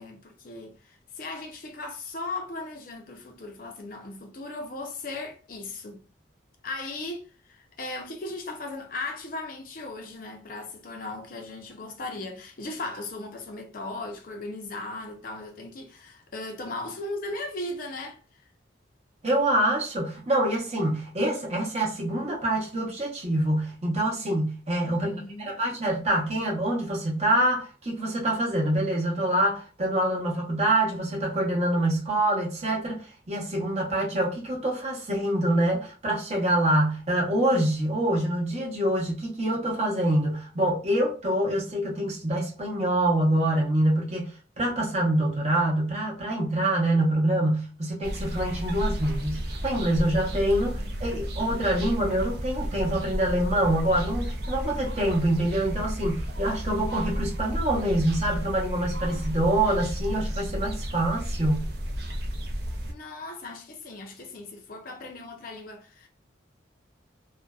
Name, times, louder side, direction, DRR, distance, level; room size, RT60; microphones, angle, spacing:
voice 1, 0.0-6.0 6.6-18.5 24.8-25.6 50.6-51.3 62.9-66.1, left 2 dB, 45° left, 0.5 m, -37 dB
voice 2, 19.2-61.7, right 1 dB, 35° right, 0.8 m, -26 dB
sound 1, 48.0-62.9, equal, 55° right, 0.4 m, -32 dB
2.6 x 2.1 x 2.3 m
head